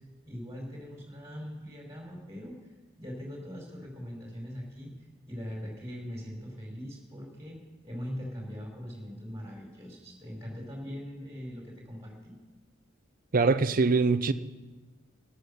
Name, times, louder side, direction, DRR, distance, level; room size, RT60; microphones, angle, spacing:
voice 1, 0.2-12.3, equal, 15° right, 4.9 m, -41 dB
voice 2, 13.3-14.3, right 4 dB, 45° right, 0.6 m, -23 dB
13.0 x 11.5 x 6.9 m
head